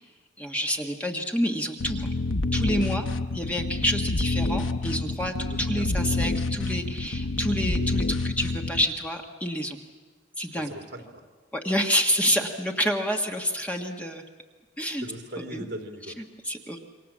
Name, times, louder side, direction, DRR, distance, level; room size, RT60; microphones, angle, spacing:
voice 1, 0.4-2.1 2.5-3.1 3.3-9.8 10.4-10.7 11.5-14.2 14.8-15.0 15.5-15.7 16.2-16.8, equal, 10° left, 2 dB, 1.5 m, -28 dB
sound 1, 1.8-8.8, left 2 dB, 85° left, 0.8 m, -28 dB
voice 2, 5.5-5.8 10.5-11.2 15.0-16.2, right 1 dB, 60° right, 3 dB, 3.2 m, -39 dB
28.0 x 24.0 x 7.4 m, 1.5 s
head